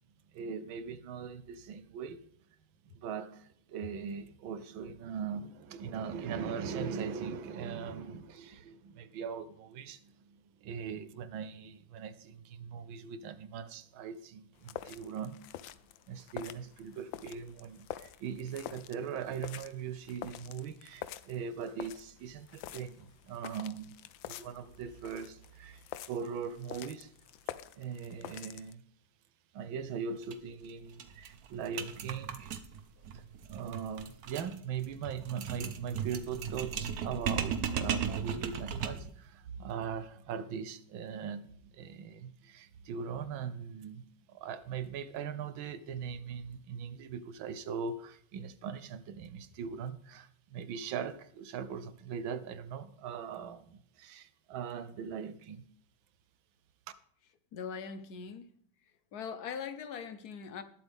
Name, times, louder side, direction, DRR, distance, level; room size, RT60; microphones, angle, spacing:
voice 1, 0.3-2.2 2.9-15.4 16.1-24.0 24.2-27.1 27.7-28.8 29.5-32.5 33.1-55.7, right 6 dB, 75° right, 1.6 m, -40 dB
sound 1, 14.6-28.7, left 12 dB, 75° left, 1.3 m, -47 dB
sound 2, 30.2-30.3 30.6-30.7 31.0-39.2, right 7 dB, 55° right, 1.2 m, -36 dB
voice 2, 57.5-58.5 59.1-60.6, left 6 dB, 55° left, 1.4 m, -41 dB
20.0 x 7.9 x 3.6 m
omnidirectional pair, 2.2 m